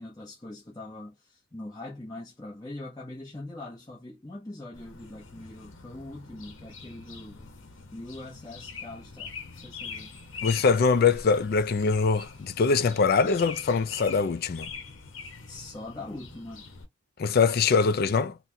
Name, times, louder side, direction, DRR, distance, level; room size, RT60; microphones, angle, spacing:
voice 1, 0.0-7.5 7.9-10.2 15.5-16.7, left 2 dB, 20° left, 0.8 m, -42 dB
sound 1, 4.7-16.9, left 5 dB, 65° left, 0.9 m, -43 dB
voice 2, 10.4-14.7 17.2-18.4, left 5 dB, 45° left, 0.4 m, -23 dB
4.0 x 2.1 x 2.7 m
head